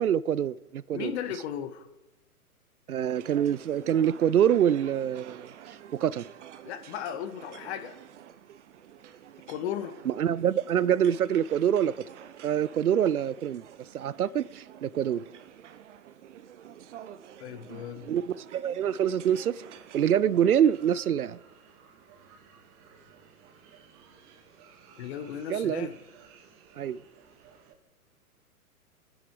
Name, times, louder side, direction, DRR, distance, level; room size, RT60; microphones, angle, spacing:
voice 1, 0.0-1.1 2.9-6.2 10.1-11.9 12.4-13.7 13.9-15.2 18.1-19.6 19.9-21.4 25.5-25.9 26.8-27.0, right 9 dB, 75° right, 0.7 m, -25 dB
voice 2, 0.9-1.9 6.6-8.0 9.5-10.0 17.4-18.1 25.0-26.0, left 9 dB, 45° left, 1.8 m, -36 dB
sound 1, 3.1-21.0, right 10 dB, 50° right, 1.1 m, -49 dB
sound 2, 18.8-27.8, right 6 dB, 30° right, 1.9 m, -56 dB
29.0 x 10.0 x 4.7 m
figure-of-eight pair, 115°, 45 cm